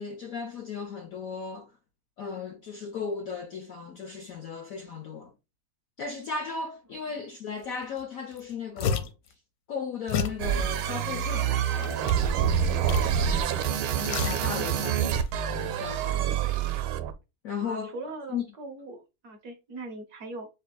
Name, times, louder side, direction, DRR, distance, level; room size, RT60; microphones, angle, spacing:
voice 1, 0.0-1.7 2.2-5.3 6.0-9.1 9.7-13.3 14.0-15.1 15.5-16.6 17.4-18.0 18.3-18.4, left 5 dB, 65° left, 0.9 m, -36 dB
sound 1, 8.0-8.1 8.3-9.3 10.1-10.5 11.1-12.3 12.9-13.4 13.7-14.9 15.2-15.3, left 6 dB, 90° left, 1.5 m, -32 dB
sound 2, 10.4-17.1, right 9 dB, 90° right, 1.5 m, -27 dB
voice 2, 14.5-14.9 17.6-20.5, right 2 dB, 60° right, 1.2 m, -41 dB
7.7 x 2.7 x 2.2 m
omnidirectional pair, 2.2 m